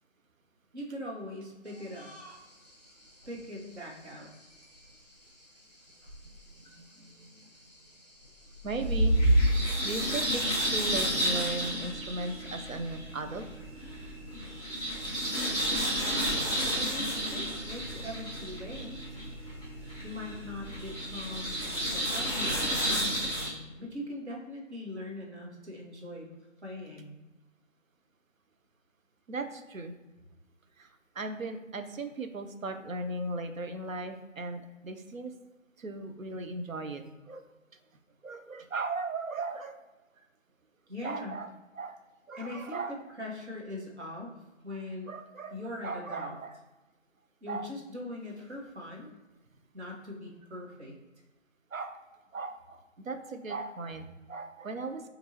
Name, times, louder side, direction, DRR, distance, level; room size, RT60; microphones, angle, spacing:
voice 1, 0.7-2.1 3.3-4.3 16.7-19.2 20.0-26.3 26.6-27.2 40.9-41.4 42.4-42.8 43.2-44.3 44.6-45.1 45.5-46.4 47.4-49.1 49.7-51.0, left 1 dB, 55° right, -2 dB, 1.2 m, -41 dB
sound 1, 1.7-2.3 2.7-2.8 3.2-3.7 4.6-4.7 6.1-6.7 8.2-9.6, right 1 dB, 30° left, 0.7 m, -26 dB
voice 2, 6.8-7.3 8.6-9.2 9.8-13.4 29.3-29.9 30.8-30.9 31.2-35.3 35.8-37.4 38.2-39.8 41.0-42.0 42.3-43.0 45.1-46.6 47.5-47.7 51.7-52.0 52.3-55.0, right 3 dB, 85° right, 7 dB, 0.7 m, -37 dB
sound 2, 8.8-23.5, equal, 15° right, 1.3 m, -32 dB
4.4 x 2.6 x 2.8 m, 1.1 s
figure-of-eight pair, 160°, 40 cm